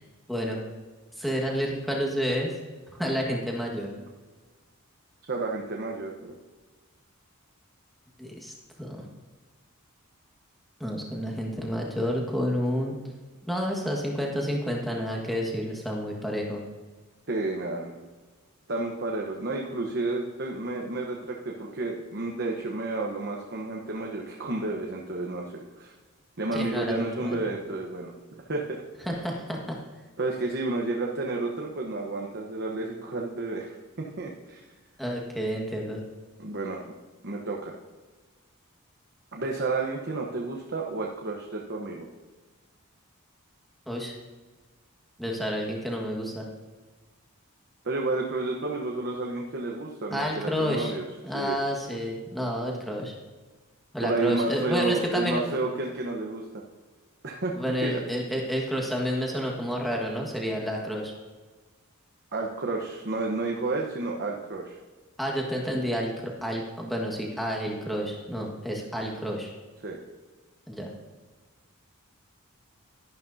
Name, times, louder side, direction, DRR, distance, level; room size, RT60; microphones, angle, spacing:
voice 1, 0.3-0.6 1.2-2.5 3.0-3.9 8.2-9.1 10.8-12.9 13.4-16.6 26.5-27.4 29.1-29.7 35.0-36.0 43.9-44.1 45.2-46.4 50.1-50.9 51.2-53.1 53.9-55.4 57.5-61.1 65.2-69.5 70.7-70.9, equal, ahead, -1 dB, 1.5 m, -30 dB
voice 2, 5.3-6.3 12.0-12.1 17.3-18.1 18.7-25.9 26.4-28.8 30.2-34.6 36.4-36.8 37.2-37.8 39.3-42.1 47.8-51.6 54.0-56.4 57.2-57.5 57.8-58.0 62.3-64.8 69.8-70.0, right 2 dB, 50° right, -1 dB, 1.0 m, -31 dB
12.5 x 11.5 x 2.7 m, 1.3 s
head